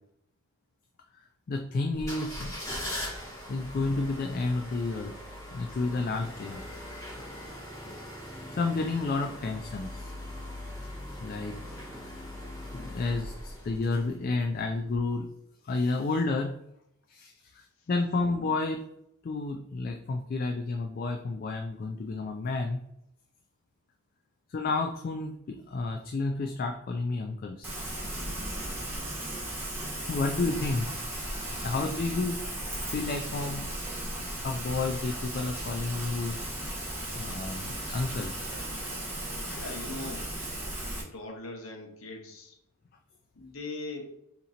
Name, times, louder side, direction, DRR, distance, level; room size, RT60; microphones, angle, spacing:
voice 1, 1.5-2.5 3.5-5.1 5.5-6.6 7.8-8.0 8.5-10.1 11.1-11.6 12.7-15.3 15.6-16.5 17.1-18.8 19.2-22.8 24.5-27.7 29.4-29.5 30.0-30.9 31.6-32.4 32.9-33.7 34.0-36.4 37.1-38.3, left 3 dB, 40° left, 4 dB, 0.3 m, -31 dB
sound 1, 1.9-14.4 14.9-15.0, left 1 dB, 15° left, 1.5 m, -41 dB
Rain, 27.6-41.0, right 1 dB, 10° right, 0.9 m, -36 dB
voice 2, 39.4-40.4 40.8-42.6 43.3-44.1, left 2 dB, 65° left, 2 dB, 0.9 m, -41 dB
3.7 x 2.9 x 4.1 m, 0.78 s
head